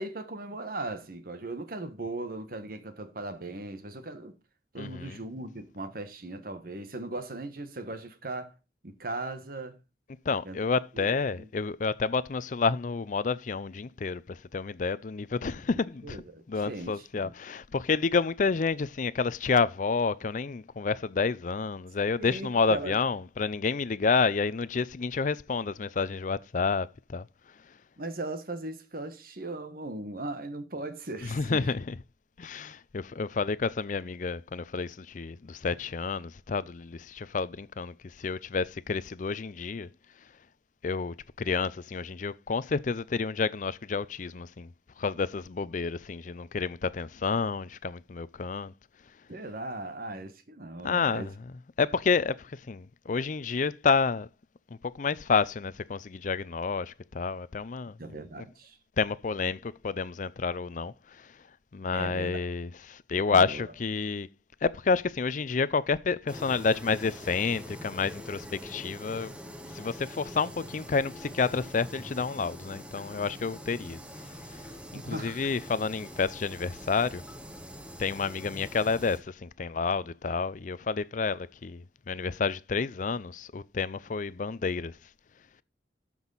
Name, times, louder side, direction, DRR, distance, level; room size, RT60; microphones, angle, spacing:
voice 1, 0.0-4.4 4.7-8.6 8.8-9.8 10.4-10.6 10.9-11.5 15.7-17.3 22.2-23.0 28.0-31.6 49.3-51.3 58.0-58.8 61.9-62.3 63.3-63.6 74.9-75.4, right 2 dB, 55° right, 1.3 m, -38 dB
voice 2, 4.8-5.2 10.3-16.2 16.5-27.2 31.2-31.9 32.4-39.9 40.8-44.7 45.0-48.7 50.8-51.3 51.8-54.3 54.8-58.0 58.4-58.5 59.0-61.3 61.7-64.3 64.6-69.3 69.7-74.0 74.5-74.7 75.1-77.2 78.0-85.0, left 4 dB, 45° left, 0.5 m, -29 dB
sound 1, 66.3-79.2, equal, 5° right, 1.0 m, -44 dB
12.5 x 6.1 x 4.0 m
head